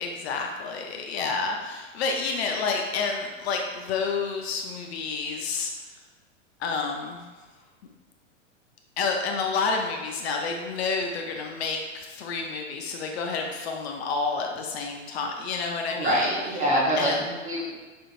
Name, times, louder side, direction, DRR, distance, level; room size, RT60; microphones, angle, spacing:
voice 1, 0.0-5.7 6.6-7.3 9.0-16.3 17.0-17.2, left 4 dB, 55° left, 2 dB, 0.6 m, -29 dB
voice 2, 15.9-17.7, equal, 20° right, -5 dB, 1.1 m, -25 dB
5.3 x 3.0 x 2.5 m, 1.3 s
hypercardioid pair, 105°, 38 cm